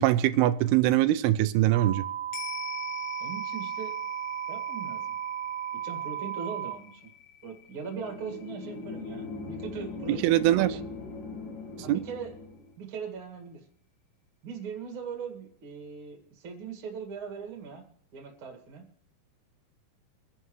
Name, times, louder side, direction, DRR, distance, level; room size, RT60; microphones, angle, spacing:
voice 1, 0.0-2.0 10.2-10.8 11.9-12.0, right 14 dB, 90° right, 2.6 m, -22 dB
sound 1, 1.7-6.7, right 10 dB, 85° left, 5.3 m, -35 dB
sound 2, 2.3-10.9 11.2-11.3, left 10 dB, 60° left, 1.7 m, -45 dB
voice 2, 3.2-3.9 4.5-5.1 5.7-7.1 7.4-10.9 11.8-12.3 12.8-13.6 14.4-18.9, right 6 dB, 40° right, 2.3 m, -40 dB
sound 3, 7.8-12.8, left 3 dB, 40° left, 1.8 m, -40 dB
25.0 x 11.0 x 3.2 m
omnidirectional pair, 4.4 m